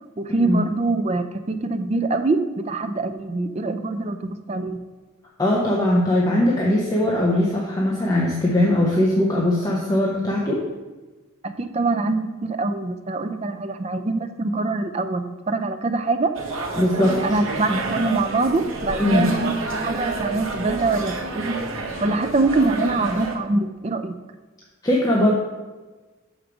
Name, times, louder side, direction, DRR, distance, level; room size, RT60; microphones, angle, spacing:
voice 1, 0.2-4.8 11.4-16.3 17.2-19.5 19.8-21.7 22.0-24.1, right 3 dB, 30° right, 9 dB, 0.4 m, -24 dB
voice 2, 5.4-10.6 16.8-17.2 19.0-19.3 24.8-25.3, left 1 dB, 20° left, -3 dB, 0.8 m, -20 dB
sound 1, 16.3-23.4, right 3 dB, 70° right, 1.1 m, -29 dB
6.4 x 5.1 x 6.0 m, 1.3 s
head